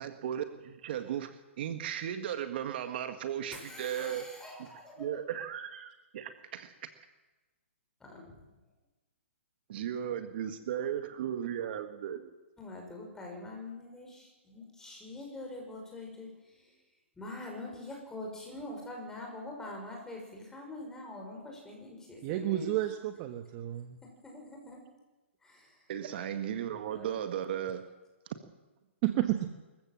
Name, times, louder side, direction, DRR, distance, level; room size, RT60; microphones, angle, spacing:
voice 1, 0.0-4.3 4.6-4.7 5.0-6.9 9.7-12.3 25.9-27.9, right 9 dB, 50° right, 8 dB, 1.8 m, -36 dB
voice 2, 3.5-5.3 8.0-8.4 12.6-16.7 17.2-22.7 24.2-24.8 25.4-25.7 26.9-27.3, left 2 dB, 10° left, 0 dB, 6.1 m, -44 dB
voice 3, 22.2-24.0 29.0-29.5, right 14 dB, 35° right, 8 dB, 1.3 m, -31 dB
25.5 x 15.0 x 7.6 m, 1.2 s
hypercardioid pair, 145°, 7 cm